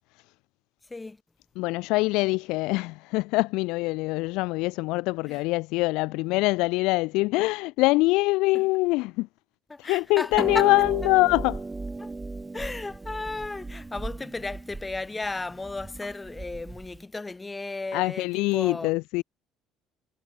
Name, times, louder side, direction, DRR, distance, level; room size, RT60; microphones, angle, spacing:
voice 1, 1.6-9.3 9.8-11.6 17.9-19.2, left 23 dB, 75° left, 0.7 m, -24 dB
voice 2, 9.7-10.7 12.0-12.1 12.5-18.9, left 3 dB, 20° left, 6.7 m, -34 dB
Harp, 10.3-17.0, right 3 dB, 20° right, 6.4 m, -37 dB
hypercardioid pair, 70°, 0 cm